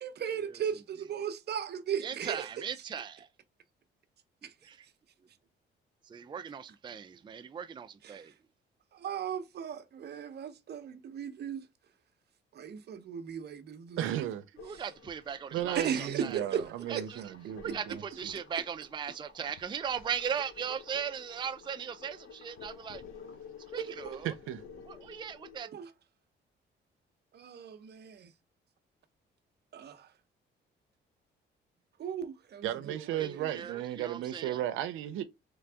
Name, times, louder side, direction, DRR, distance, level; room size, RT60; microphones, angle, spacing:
voice 1, 0.0-2.4 4.4-4.5 8.0-8.3 8.9-11.7 12.5-14.3 14.7-14.8 15.7-16.6 16.9-17.0 23.8-24.2 25.6-25.9 27.3-28.3 29.7-30.1 32.0-33.7, right 8 dB, 55° right, 0.8 m, -37 dB
voice 2, 2.0-3.3 4.4-4.9 6.0-8.3 14.6-16.4 16.9-17.2 17.6-23.0 23.7-24.3 24.8-25.7 33.2-34.6, right 7 dB, 25° right, 0.4 m, -38 dB
voice 3, 14.0-14.5 15.5-18.3 24.2-24.6 25.0-25.1 32.6-35.2, right 12 dB, 90° right, 0.6 m, -35 dB
sound 1, 14.6-25.6, left 6 dB, 85° left, 1.0 m, -52 dB
Liquid, 16.3-24.3, left 3 dB, 55° left, 1.7 m, -61 dB
3.9 x 3.3 x 3.4 m
cardioid pair, 90°, 20 cm